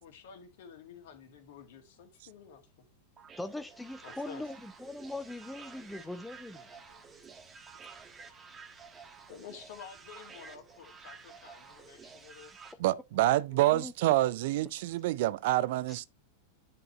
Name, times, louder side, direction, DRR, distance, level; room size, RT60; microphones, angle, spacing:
voice 1, 0.0-2.6 4.0-4.5 5.7-7.9 8.4-8.7 9.3-12.6 13.1-13.7, left 7 dB, 55° left, 1.9 m, -52 dB
sound 1, 3.2-12.7, right 5 dB, 20° right, 1.3 m, -51 dB
voice 2, 3.4-6.6 13.7-13.9, left 2 dB, 5° left, 0.6 m, -40 dB
voice 3, 12.8-16.0, right 15 dB, 50° right, 0.3 m, -27 dB
9.9 x 5.3 x 3.1 m
figure-of-eight pair, 90°, 0 cm